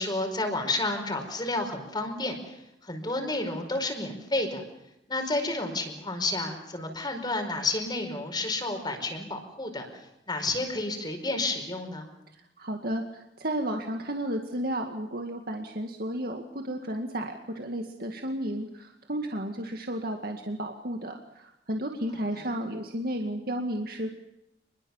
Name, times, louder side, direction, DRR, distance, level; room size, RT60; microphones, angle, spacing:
voice 1, 0.0-2.6 2.8-4.6 5.1-9.9 10.3-12.1 22.3-22.4, left 2 dB, 25° left, 5 dB, 5.0 m, -30 dB
voice 2, 12.3-24.1, right 1 dB, 55° right, 3 dB, 2.2 m, -33 dB
28.0 x 22.0 x 7.3 m, 0.83 s
head